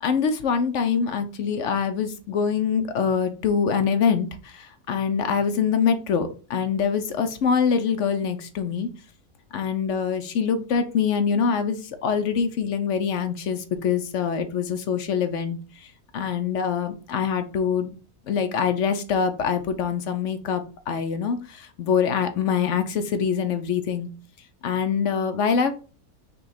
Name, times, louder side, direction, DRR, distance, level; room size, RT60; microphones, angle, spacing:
voice 1, 0.0-8.9 9.5-15.6 16.1-18.0 18.3-24.1 24.6-25.7, left 6 dB, 65° left, 8 dB, 0.9 m, -24 dB
5.6 x 2.3 x 4.0 m, 0.35 s
omnidirectional pair, 1.6 m